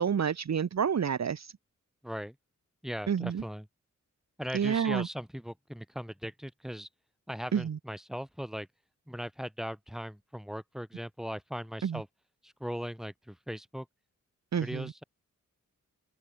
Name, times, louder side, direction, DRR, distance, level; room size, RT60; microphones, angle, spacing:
voice 1, 0.0-1.5 3.1-3.4 4.5-5.1 7.5-7.8 11.8-12.0 14.5-14.8, right 7 dB, 60° right, 1.0 m, -28 dB
voice 2, 2.0-2.4 2.8-3.7 4.4-6.9 7.3-8.7 9.1-12.1 12.4-13.9 14.5-15.0, equal, ahead, 5.2 m, -39 dB
wide cardioid pair, 110°, 31 cm